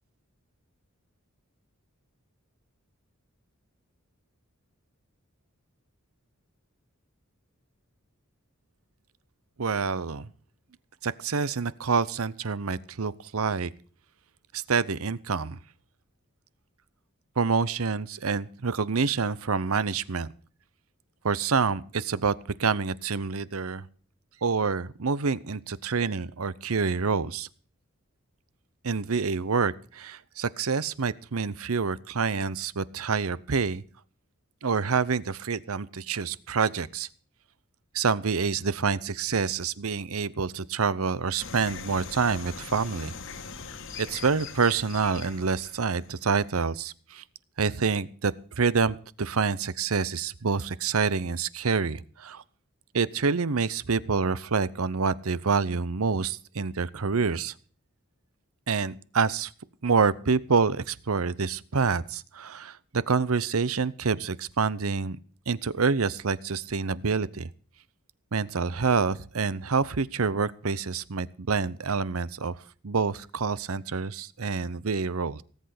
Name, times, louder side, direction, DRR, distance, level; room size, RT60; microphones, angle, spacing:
voice 1, 9.6-10.3 11.0-13.7 14.5-15.6 17.4-20.3 21.2-22.3 22.6-23.9 24.4-27.5 28.8-33.8 34.6-37.1 37.9-43.1 44.0-47.2 47.6-52.4 52.9-57.5 58.7-59.5 59.8-65.2 65.5-67.5 68.3-75.4, right 5 dB, 80° right, 19 dB, 0.8 m, -27 dB
sound 1, 41.4-46.5, left 5 dB, 60° left, 1.5 m, -42 dB
18.0 x 8.1 x 6.6 m, 0.44 s
head